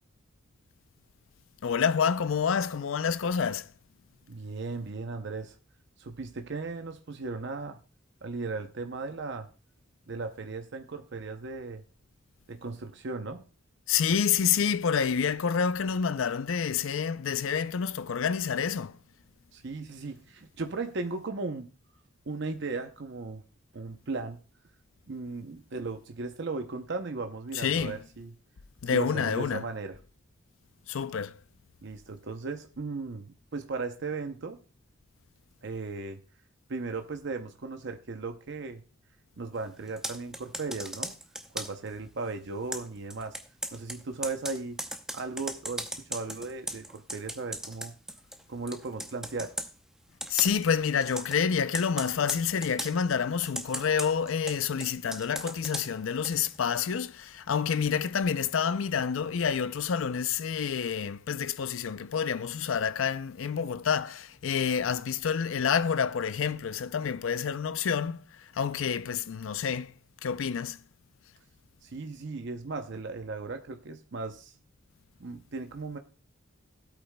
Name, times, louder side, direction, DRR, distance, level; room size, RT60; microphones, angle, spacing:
voice 1, 1.6-3.7 13.9-19.0 27.5-28.0 28.8-29.6 30.9-31.4 50.3-69.9 70.2-70.8, left 7 dB, 70° left, 0.4 m, -28 dB
voice 2, 4.3-5.6 6.0-7.8 8.2-9.5 10.1-11.8 12.5-13.4 19.5-21.7 22.3-23.4 23.7-24.4 25.1-28.3 28.9-30.0 31.8-34.6 35.6-36.2 36.7-38.8 39.4-41.1 41.5-43.4 43.7-44.8 45.1-47.9 48.5-49.5 71.8-74.5 75.2-76.0, right 3 dB, 55° right, 0.7 m, -36 dB
Computer keyboard, 39.9-41.9 42.7-48.4 48.7-49.7 50.2-50.7 51.0-51.4 51.7-53.0 53.4-56.6, right 1 dB, 5° right, 0.6 m, -38 dB
17.0 x 8.3 x 2.2 m
head